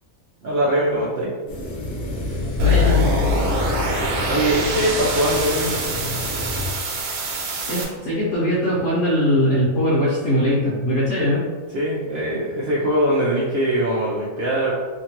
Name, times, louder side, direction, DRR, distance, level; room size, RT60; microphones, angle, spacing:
voice 1, 0.4-1.3 4.1-5.7 11.7-14.7, right 1 dB, 60° right, -7 dB, 0.6 m, -22 dB
sound 1, 1.5-6.7, left 1 dB, 90° left, 1.1 m, -30 dB
voice 2, 2.6-3.0 7.7-11.4, equal, 60° left, -9 dB, 1.1 m, -20 dB
sound 2, 2.6-7.8, left 1 dB, 80° right, 1.0 m, -23 dB
2.9 x 2.3 x 2.8 m, 1.4 s
omnidirectional pair, 1.5 m